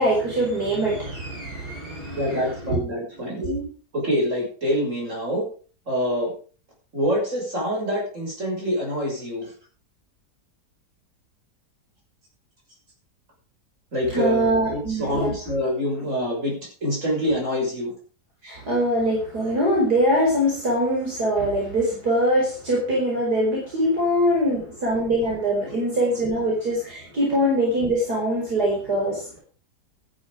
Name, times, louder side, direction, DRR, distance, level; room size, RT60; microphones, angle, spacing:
voice 1, 0.0-2.4 2.6-2.8 3.4-3.7 14.1-15.3 18.4-29.4, equal, 65° right, -3 dB, 5.4 m, -23 dB
voice 2, 2.2-3.4 3.9-5.5 5.9-6.3 6.9-9.5 13.9-16.5 16.8-17.9 24.4-24.5, equal, 45° right, -1 dB, 6.9 m, -25 dB
13.5 x 10.5 x 5.0 m, 0.40 s
omnidirectional pair, 1.8 m